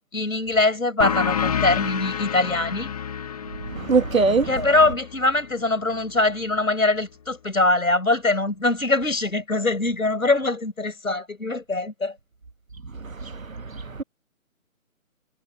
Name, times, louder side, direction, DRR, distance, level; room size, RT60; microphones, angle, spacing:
voice 1, 0.0-2.9 4.5-12.2, left 2 dB, 75° left, 5.6 m, -23 dB
sound 1, 1.0-6.2, left 8 dB, 25° left, 1.7 m, -29 dB
voice 2, 3.7-4.5 13.0-14.0, right 4 dB, 70° right, 1.5 m, -23 dB
figure-of-eight pair, 150°, 42 cm